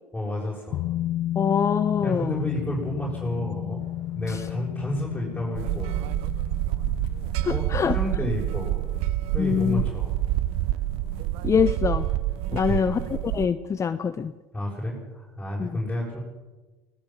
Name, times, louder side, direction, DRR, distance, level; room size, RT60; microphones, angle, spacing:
voice 1, 0.1-0.9 2.0-3.8 4.1-6.0 7.5-8.8 9.3-10.1 12.5-12.9 14.5-16.2, equal, 5° left, -5 dB, 6.9 m, -31 dB
sound 1, 0.7-9.8 10.1-10.2, left 13 dB, 55° left, 0.6 m, -33 dB
voice 2, 1.4-2.4 4.3-4.4 7.4-8.0 9.4-9.8 11.4-12.1 12.5-14.3 15.6-15.7, left 7 dB, 30° left, 12 dB, 0.9 m, -24 dB
sound 2, 3.8-13.5, left 6 dB, 75° left, 2.5 m, -45 dB
sound 3, 5.5-13.5, right 16 dB, 65° right, 0.7 m, -27 dB
19.5 x 18.0 x 7.3 m, 1.2 s
hypercardioid pair, 80°, 10 cm